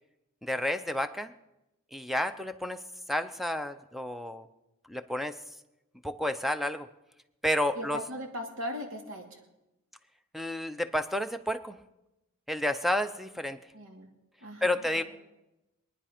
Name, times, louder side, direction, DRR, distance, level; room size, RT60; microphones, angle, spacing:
voice 1, 0.4-1.3 1.9-2.8 3.1-4.5 4.9-5.4 6.0-6.9 7.4-8.0 10.3-11.8 12.5-13.6 14.6-15.0, left 1 dB, ahead, 10 dB, 0.6 m, -30 dB
voice 2, 7.8-9.3 13.7-14.1 14.4-14.8, left 1 dB, 65° right, 2 dB, 2.6 m, -38 dB
24.0 x 9.8 x 5.1 m, 0.95 s
head